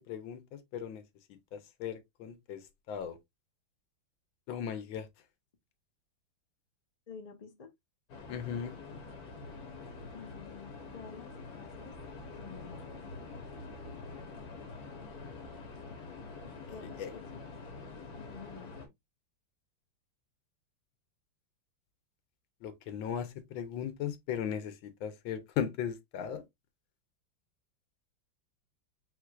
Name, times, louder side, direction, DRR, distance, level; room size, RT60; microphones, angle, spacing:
voice 1, 0.1-1.0 1.5-3.2 4.5-5.1 8.3-8.7 17.0-17.2 22.6-26.4, left 8 dB, 85° left, 1.5 m, -37 dB
voice 2, 7.1-7.7 10.1-11.9 12.4-13.0 16.4-17.5 18.2-18.7, left 6 dB, 70° left, 0.3 m, -50 dB
sound 1, 8.1-18.9, left 3 dB, 55° left, 1.5 m, -46 dB
4.5 x 4.2 x 2.3 m
omnidirectional pair, 2.1 m